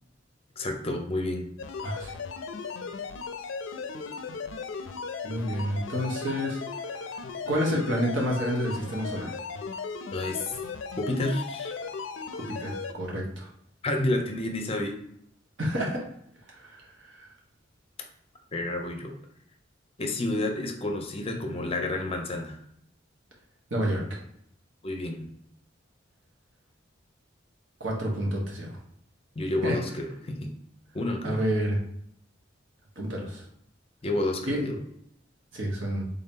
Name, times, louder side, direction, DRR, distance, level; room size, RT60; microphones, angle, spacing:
voice 1, 0.6-1.5 10.1-10.6 11.0-11.7 13.8-15.0 18.5-19.2 20.0-22.6 24.8-25.3 29.4-30.5 30.9-31.4 34.0-34.8, left 2 dB, 30° left, 4 dB, 0.5 m, -30 dB
sound 1, 1.6-12.9, left 5 dB, 85° left, 0.4 m, -37 dB
voice 2, 1.8-2.1 5.2-6.6 7.5-9.3 12.3-13.5 15.6-16.0 16.6-16.8 17.1-17.3 23.7-24.2 27.8-28.8 29.6-29.8 31.2-31.8 33.0-33.4 34.4-34.6 35.5-36.0, equal, 80° right, -1 dB, 1.1 m, -29 dB
3.6 x 2.8 x 3.6 m, 0.72 s
head